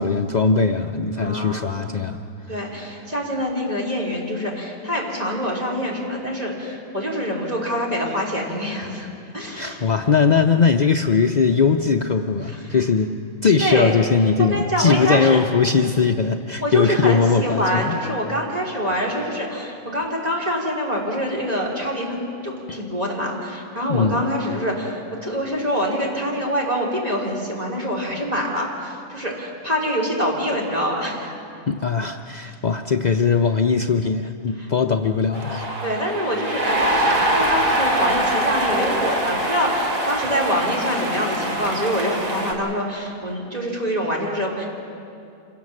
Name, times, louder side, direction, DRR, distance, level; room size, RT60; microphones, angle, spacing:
voice 1, 0.0-2.2 9.6-13.1 13.4-18.0 22.7-22.8 23.9-24.2 31.7-35.7, left 5 dB, 65° left, 5 dB, 0.4 m, -20 dB
voice 2, 1.2-1.7 2.5-9.1 9.3-9.8 12.5-12.8 13.6-13.9 14.4-15.4 16.6-31.3 34.6-34.7 35.8-44.7, equal, 25° right, -2 dB, 3.5 m, -25 dB
sound 1, 35.3-42.5, right 1 dB, 80° right, 3.2 m, -23 dB
26.5 x 17.5 x 7.5 m, 2.6 s
omnidirectional pair, 1.7 m